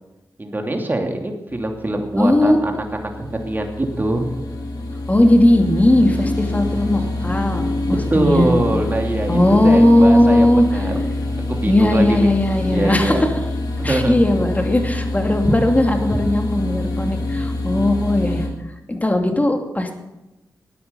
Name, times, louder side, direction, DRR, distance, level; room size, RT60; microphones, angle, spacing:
voice 1, 0.4-4.3 8.1-11.0 11.5-12.3 12.7-13.2 13.8-14.2, right 1 dB, 30° right, 3 dB, 2.8 m, -23 dB
sound 1, 1.5-18.5, left 2 dB, 75° left, 3.5 m, -26 dB
voice 2, 2.2-2.6 5.1-8.5 9.3-10.6 11.7-13.3 13.8-18.5 18.9-19.9, left 1 dB, 20° left, 4 dB, 2.6 m, -17 dB
13.5 x 9.5 x 8.4 m, 1.0 s
cardioid pair, 55°, 7 cm